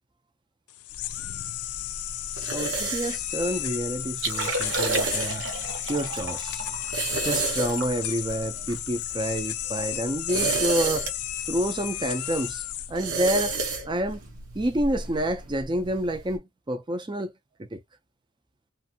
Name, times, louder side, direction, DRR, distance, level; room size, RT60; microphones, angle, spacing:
sound 1, 0.7-13.5, left 14 dB, 85° left, 0.4 m, -33 dB
sound 2, 0.9-16.4, right 4 dB, 90° right, 0.9 m, -33 dB
voice 1, 2.5-5.5 5.9-6.7 7.2-11.1 11.5-13.5 13.9-14.2 14.5-17.3 17.7-17.8, right 1 dB, 20° right, 0.4 m, -28 dB
Liquid, 4.1-9.5 9.9-10.0 10.3-10.6 10.9-11.1 11.7-11.9 13.4-13.5, right 3 dB, 55° right, 0.8 m, -33 dB
2.6 x 2.5 x 2.7 m
head